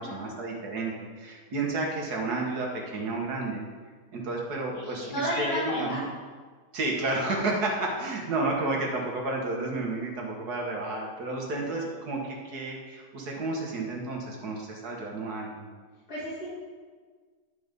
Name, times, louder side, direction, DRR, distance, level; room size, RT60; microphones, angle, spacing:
voice 1, 0.0-3.6 4.1-6.0 6.7-15.7, right 2 dB, 60° right, -1 dB, 2.0 m, -31 dB
voice 2, 4.7-6.0 11.5-12.0 16.1-16.5, equal, 60° left, -10 dB, 2.8 m, -33 dB
9.9 x 5.1 x 5.3 m, 1.5 s
omnidirectional pair, 1.9 m